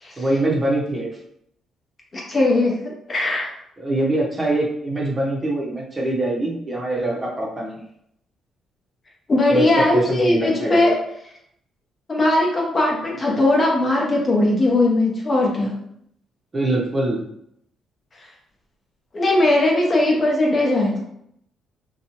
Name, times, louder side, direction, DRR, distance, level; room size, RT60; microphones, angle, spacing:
voice 1, 0.2-1.1 3.8-7.8 9.5-10.8 16.5-17.2, right 1 dB, 30° right, -2 dB, 0.7 m, -23 dB
voice 2, 2.1-3.5 9.3-11.0 12.1-15.8 19.1-21.0, left 2 dB, 35° left, -2 dB, 0.8 m, -19 dB
2.8 x 2.3 x 2.8 m, 0.73 s
cardioid pair, 90°, 0 cm